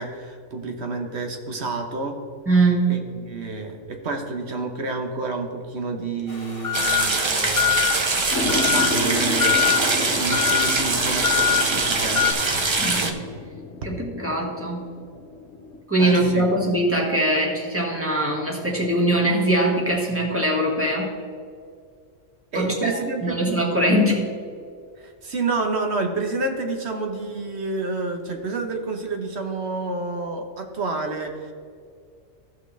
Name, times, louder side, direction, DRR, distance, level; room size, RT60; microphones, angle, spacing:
voice 1, 0.0-2.1 2.9-12.3 16.0-16.4 22.5-23.8 25.0-31.5, right 3 dB, 55° right, 3 dB, 1.3 m, -29 dB
voice 2, 2.5-3.0 12.8-13.2 13.8-14.8 15.9-21.1 22.5-24.2, right 1 dB, 10° right, -3 dB, 1.6 m, -22 dB
sound 1, 6.3-12.3, left 10 dB, 30° left, 1.0 m, -25 dB
sound 2, 6.7-13.1, right 3 dB, 35° right, 0.5 m, -23 dB
sound 3, 8.3-15.8, left 3 dB, 70° left, 1.2 m, -32 dB
15.0 x 5.8 x 3.3 m, 2.2 s
omnidirectional pair, 1.4 m